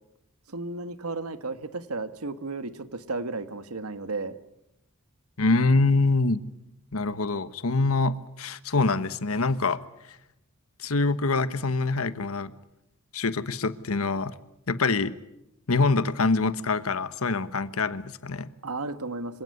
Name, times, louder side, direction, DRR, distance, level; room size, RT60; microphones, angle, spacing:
voice 1, 0.5-4.4 18.6-19.4, right 3 dB, 85° right, 1.6 m, -33 dB
voice 2, 5.4-6.4 6.9-9.8 10.8-12.5 13.1-14.3 14.7-15.1 15.7-18.5, left 3 dB, 70° left, 1.2 m, -25 dB
27.0 x 17.5 x 9.8 m
head